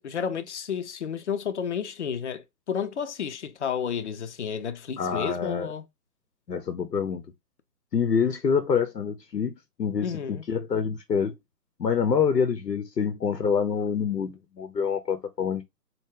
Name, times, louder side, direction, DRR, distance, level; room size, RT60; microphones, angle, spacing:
voice 1, 0.0-5.8 10.0-10.4, left 7 dB, 45° left, 0.5 m, -31 dB
voice 2, 5.0-5.7 6.5-7.2 7.9-11.3 11.8-15.6, left 6 dB, 85° left, 0.7 m, -26 dB
4.5 x 2.1 x 3.5 m
figure-of-eight pair, 140°, 49 cm